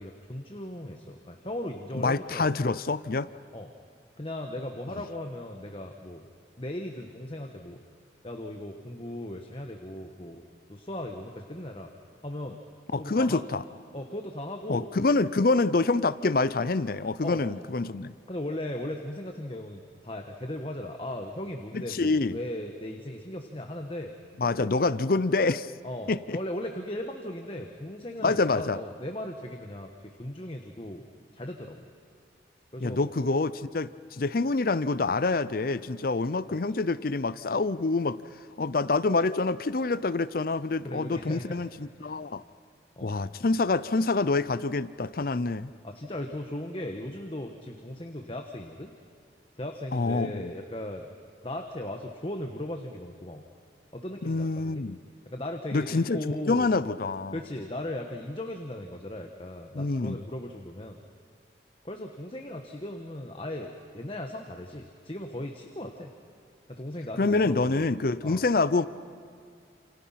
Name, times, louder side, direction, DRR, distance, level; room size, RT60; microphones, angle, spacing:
voice 1, 0.0-2.6 3.5-3.7 4.2-6.2 6.6-7.8 8.2-10.4 10.7-11.9 12.2-12.6 13.0-13.4 13.9-14.9 17.2-17.4 18.3-24.1 25.8-29.9 30.2-31.1 31.3-31.8 32.7-33.1 40.8-41.6 42.0-42.2 43.0-43.2 45.8-48.9 49.5-51.1 51.4-53.5 53.9-54.8 55.3-56.7 57.3-61.0 61.8-66.1 66.7-67.9 68.2-68.4, left 1 dB, 30° left, 4 dB, 1.3 m, -37 dB
voice 2, 1.9-3.3 4.9-5.0 12.9-13.6 14.7-18.1 21.7-22.4 24.4-25.7 26.1-26.4 28.2-28.8 32.8-38.2 38.6-42.4 43.0-45.7 49.9-50.5 54.2-55.0 55.7-57.4 59.7-60.2 67.2-68.9, left 3 dB, 50° left, 16 dB, 0.6 m, -26 dB
29.0 x 28.5 x 5.8 m, 2.3 s
head